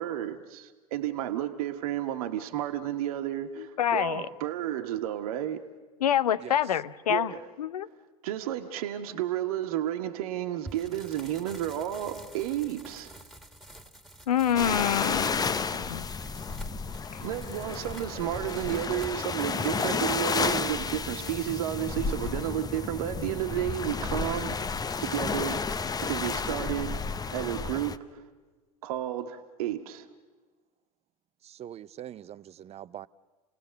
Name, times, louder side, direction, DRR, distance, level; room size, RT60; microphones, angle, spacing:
voice 1, 0.0-5.7 7.1-7.5 8.2-13.2 17.2-24.7 25.0-28.2 28.8-30.1, right 12 dB, 70° right, 1.3 m, -32 dB
voice 2, 3.6-4.2 6.0-7.3 7.6-7.9 14.3-16.1, left 10 dB, 80° left, 0.8 m, -27 dB
voice 3, 6.4-6.7 31.4-33.1, right 11 dB, 35° right, 0.6 m, -43 dB
sound 1, 10.7-21.4, right 1 dB, ahead, 2.2 m, -49 dB
sound 2, 14.5-28.0, left 5 dB, 20° left, 0.8 m, -32 dB
29.0 x 18.0 x 6.5 m
hypercardioid pair, 80°, 20 cm